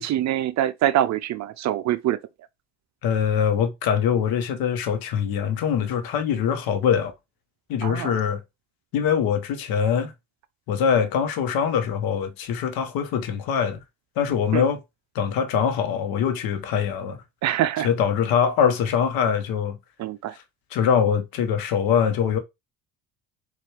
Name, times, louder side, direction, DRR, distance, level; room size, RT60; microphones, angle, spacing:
voice 1, 0.0-2.2 7.8-8.1 14.5-14.6 17.4-17.9 20.0-20.3, right 12 dB, 45° right, 0.5 m, -24 dB
voice 2, 3.0-7.1 7.7-8.4 8.9-10.1 10.7-13.8 14.2-14.8 15.1-17.2 17.8-19.8 20.3-20.4 20.7-22.4, left 7 dB, 65° left, 0.9 m, -23 dB
4.2 x 2.5 x 3.2 m
hypercardioid pair, 65°, 39 cm